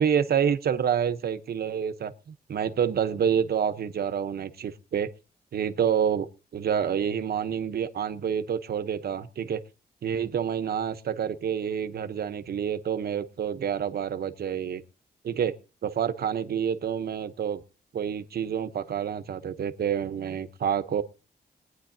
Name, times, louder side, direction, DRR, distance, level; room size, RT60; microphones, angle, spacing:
voice 1, 0.0-5.1 5.5-6.3 6.5-9.6 10.0-14.8 15.2-15.5 15.8-17.6 17.9-21.0, right 8 dB, 70° right, 0.9 m, -28 dB
23.0 x 9.6 x 2.7 m
wide cardioid pair, 140°, 17 cm